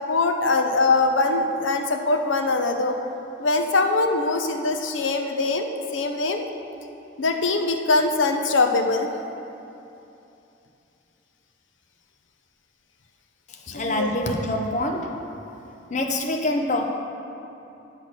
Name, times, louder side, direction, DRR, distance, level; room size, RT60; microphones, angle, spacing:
voice 1, 0.1-3.0 3.4-6.4 7.2-9.1 13.7-14.1, left 3 dB, 90° left, 5 dB, 0.7 m, -22 dB
voice 2, 13.5-15.3 15.9-16.9, left 1 dB, 40° left, 2 dB, 0.6 m, -26 dB
8.8 x 5.9 x 6.0 m, 2.8 s
head